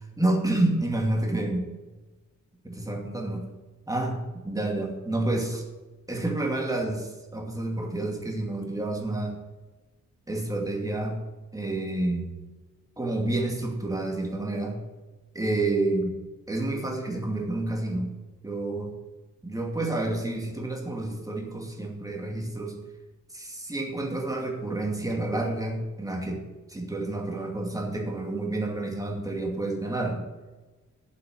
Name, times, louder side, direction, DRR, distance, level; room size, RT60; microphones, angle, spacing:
voice 1, 0.2-1.7 2.6-3.4 3.9-5.6 6.1-9.4 10.3-11.2 11.5-12.3 13.0-14.8 15.3-16.2 16.5-18.1 18.4-18.9 19.4-22.8 23.3-26.4 26.7-30.2, right 2 dB, 10° right, 1 dB, 2.3 m, -29 dB
8.5 x 7.8 x 8.3 m, 1.2 s
cardioid pair, 110°, 32 cm